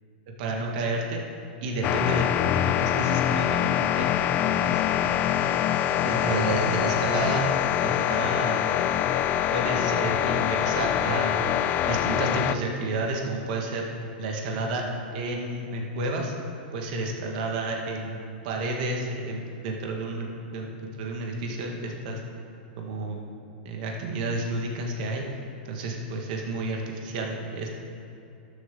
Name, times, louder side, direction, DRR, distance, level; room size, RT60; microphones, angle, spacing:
voice 1, 0.4-1.2 1.6-4.1 4.5-5.3 6.0-7.4 7.8-8.7 9.5-11.5 11.9-13.8 14.2-14.8 15.1-16.3 16.7-22.2 22.8-23.3 23.7-25.3 25.7-27.7, right 2 dB, 55° right, 0 dB, 1.8 m, -31 dB
sound 1, 1.8-12.5, left 11 dB, 35° left, 0.3 m, -24 dB
12.5 x 7.6 x 3.8 m, 2.7 s
hypercardioid pair, 135°, 5 cm